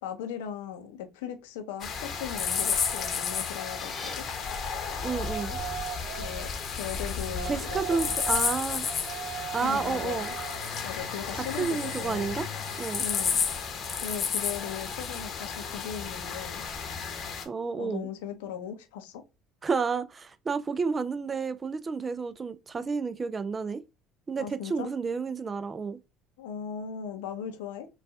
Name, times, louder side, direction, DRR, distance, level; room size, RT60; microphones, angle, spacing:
voice 1, 0.0-4.3 6.1-8.1 9.6-10.3 10.8-12.4 13.0-13.4 14.0-16.7 17.8-19.2 24.4-24.9 26.4-27.9, left 8 dB, 80° left, 0.6 m, -38 dB
sound 1, 1.8-17.5, left 6 dB, 45° left, 0.8 m, -32 dB
sound 2, 3.3-4.1, left 2 dB, 5° left, 1.5 m, -44 dB
Yell, 3.5-13.7, right 6 dB, 70° right, 1.1 m, -41 dB
voice 2, 5.0-5.6 7.4-8.9 9.5-10.3 11.4-12.5 12.8-13.1 17.5-18.1 19.6-23.8 24.3-26.0, right 5 dB, 30° right, 0.3 m, -31 dB
3.9 x 2.3 x 2.3 m
hypercardioid pair, 70°, 0 cm